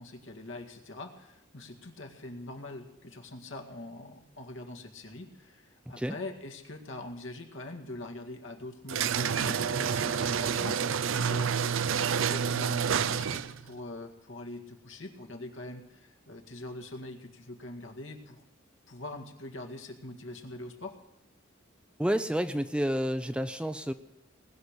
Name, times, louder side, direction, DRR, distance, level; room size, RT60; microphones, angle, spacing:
voice 1, 0.0-18.4 18.9-21.0, left 2 dB, 70° left, 3 dB, 2.0 m, -43 dB
sound 1, 8.9-13.6, right 7 dB, 80° right, 0.5 m, -28 dB
voice 2, 22.0-23.9, equal, 5° right, 11 dB, 0.5 m, -29 dB
20.0 x 6.7 x 10.0 m, 0.84 s
head